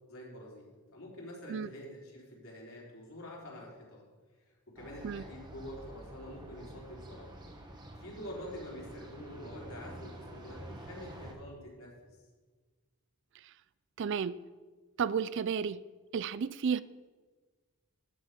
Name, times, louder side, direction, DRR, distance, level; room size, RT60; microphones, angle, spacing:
voice 1, 0.1-4.1 4.5-7.3 8.0-11.9, equal, 65° left, 3.7 m, -47 dB
sound 1, 4.8-11.3, right 1 dB, 20° right, 1.3 m, -48 dB
voice 2, 14.0-14.4 15.0-15.8 16.1-16.8, right 6 dB, 55° right, 0.3 m, -32 dB
12.5 x 5.9 x 8.2 m
head